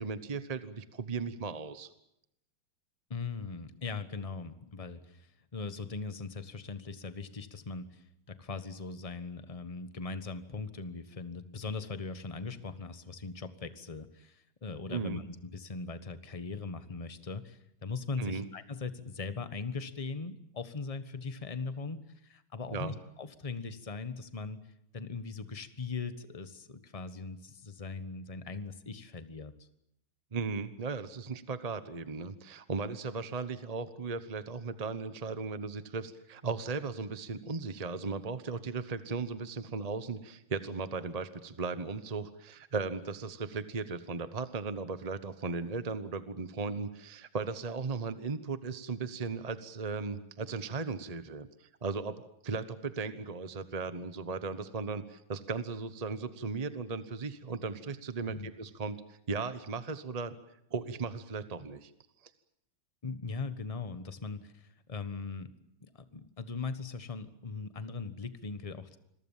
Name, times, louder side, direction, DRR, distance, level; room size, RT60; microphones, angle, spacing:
voice 1, 0.0-1.9 14.9-15.2 18.2-18.4 22.7-23.0 30.3-60.3 60.7-61.9, right 4 dB, 30° right, 12 dB, 0.7 m, -37 dB
voice 2, 3.1-24.6 24.9-29.7 58.3-58.5 63.0-65.5 65.8-69.0, left 4 dB, 20° left, 12 dB, 1.1 m, -40 dB
27.5 x 22.5 x 7.4 m, 0.78 s
omnidirectional pair, 2.2 m